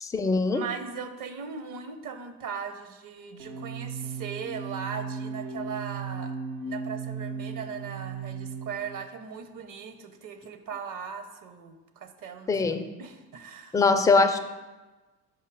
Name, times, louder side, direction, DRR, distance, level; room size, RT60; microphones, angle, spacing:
voice 1, 0.0-0.6 12.5-12.8 13.7-14.4, left 4 dB, 10° left, 7 dB, 0.4 m, -22 dB
voice 2, 0.5-6.4 6.6-13.8, right 6 dB, 45° right, 9 dB, 0.8 m, -38 dB
sound 1, 3.4-9.1, right 5 dB, 85° right, 1.2 m, -36 dB
5.6 x 4.7 x 4.7 m, 1.2 s
hypercardioid pair, 70°, 45 cm